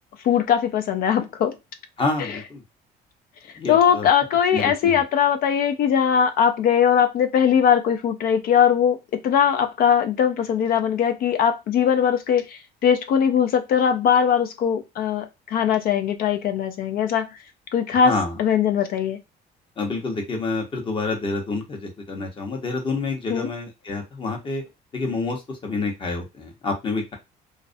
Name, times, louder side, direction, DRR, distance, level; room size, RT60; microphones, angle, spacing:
voice 1, 0.2-1.5 2.2-2.4 3.7-17.4 17.7-18.1 18.4-19.2 23.3-23.5, left 8 dB, 60° left, 0.4 m, -20 dB
voice 2, 2.0-2.6 3.6-4.1 4.5-5.0 18.0-18.4 19.8-24.6 24.9-27.2, left 3 dB, 30° left, 0.8 m, -28 dB
2.4 x 2.1 x 2.5 m
cardioid pair, 110°, 17 cm